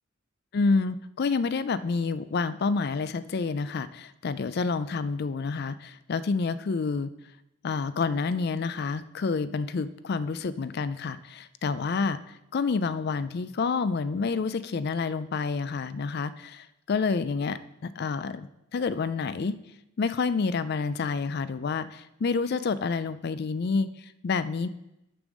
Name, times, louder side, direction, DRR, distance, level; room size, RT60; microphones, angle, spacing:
voice 1, 0.5-7.1 7.6-12.2 12.5-19.5 20.0-24.7, left 4 dB, 50° left, 15 dB, 0.4 m, -28 dB
6.8 x 5.2 x 6.3 m, 0.87 s
head